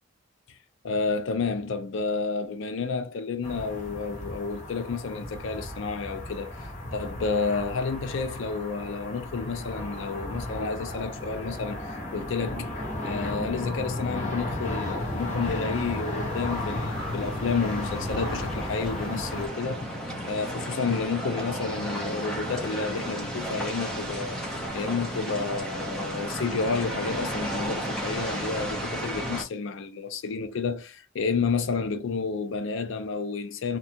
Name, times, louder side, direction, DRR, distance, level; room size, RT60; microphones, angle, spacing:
voice 1, 0.8-12.7 13.0-19.9 20.3-33.8, left 4 dB, 65° left, 0.4 m, -30 dB
sound 1, 3.4-19.5, left 1 dB, 35° left, 0.8 m, -34 dB
sound 2, 15.0-29.4, equal, 5° left, 0.5 m, -34 dB
2.7 x 2.2 x 2.7 m
head